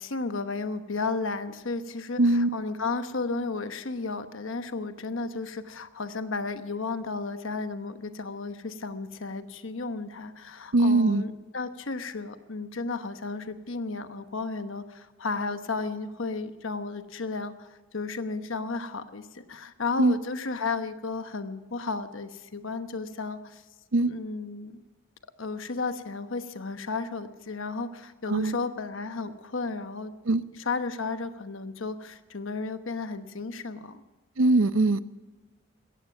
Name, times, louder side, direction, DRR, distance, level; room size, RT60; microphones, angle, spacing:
voice 1, 0.0-23.6 24.1-24.8 25.4-30.1 30.6-34.0, left 3 dB, 70° left, 10 dB, 1.0 m, -33 dB
voice 2, 2.2-2.5 10.7-11.2 20.0-20.2 23.9-24.1 28.3-28.6 30.3-30.4 34.4-35.0, right 2 dB, 70° right, 14 dB, 0.7 m, -21 dB
17.0 x 14.5 x 5.8 m, 1.2 s
head